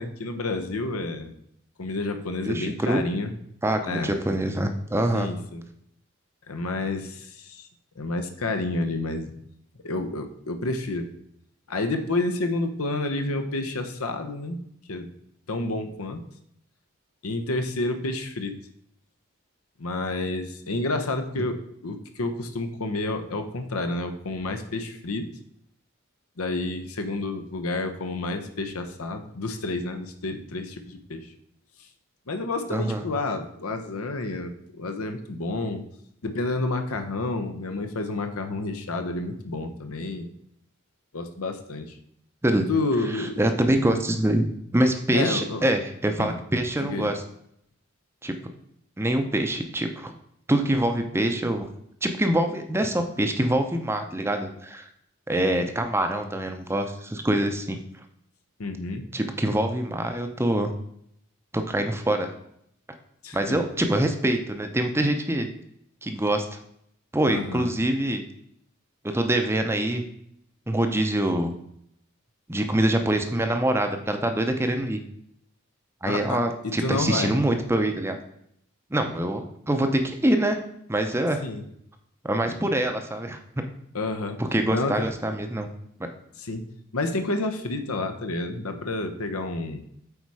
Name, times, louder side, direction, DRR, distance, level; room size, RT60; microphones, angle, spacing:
voice 1, 0.0-1.3 1.8-3.3 3.9-4.1 5.1-5.6 6.5-7.7 8.0-9.3 9.8-11.1 11.7-14.6 14.9-15.1 15.5-16.2 17.2-18.5 19.8-25.3 26.4-31.3 32.3-35.8 36.2-40.3 41.1-42.0 42.7-43.4 45.1-45.6 46.2-46.4 46.8-47.1 58.6-59.0 63.2-63.6 67.2-67.7 76.0-76.4 76.6-77.4 81.4-81.6 83.9-84.4 84.7-85.0 86.4-86.7 86.9-89.8, left 2 dB, 85° left, 6 dB, 0.9 m, -29 dB
voice 2, 2.5-3.0 3.6-5.3 32.7-33.0 42.4-42.7 43.1-44.4 44.7-47.2 48.2-48.3 49.0-50.1 50.5-51.7 52.0-54.9 55.3-57.8 59.1-60.7 61.5-62.3 63.3-65.5 66.0-66.6 67.1-68.2 69.0-70.0 70.7-71.5 72.5-75.0 76.0-78.2 78.9-80.6 80.9-81.4 82.2-83.4 84.4-85.7, right 1 dB, 10° right, 6 dB, 0.6 m, -25 dB
8.3 x 4.3 x 4.8 m, 0.72 s
head